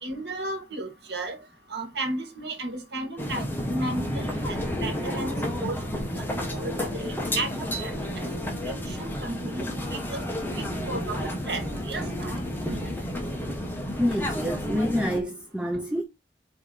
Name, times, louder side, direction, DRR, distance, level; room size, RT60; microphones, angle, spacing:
voice 1, 0.0-1.4 1.7-7.9 8.7-9.7 10.1-10.2 10.5-12.3 12.7-12.9, right 2 dB, 65° right, 1.9 m, -34 dB
sound 1, 3.2-15.2, equal, 10° left, 1.6 m, -31 dB
voice 2, 14.0-16.0, equal, 5° right, 0.7 m, -27 dB
5.0 x 4.7 x 4.8 m
head